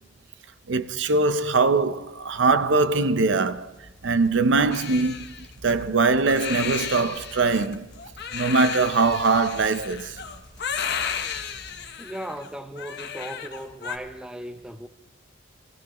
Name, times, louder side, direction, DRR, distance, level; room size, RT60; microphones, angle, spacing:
voice 1, 0.7-3.7 4.0-7.9 8.3-10.2, right 3 dB, 70° right, 0.6 m, -22 dB
sound 1, 2.2-11.9, equal, 25° left, 3.8 m, -50 dB
Crying sobbing, 4.7-14.0, left 7 dB, 60° left, 1.0 m, -33 dB
voice 2, 12.0-14.9, equal, 5° right, 0.6 m, -37 dB
22.0 x 15.0 x 3.0 m
head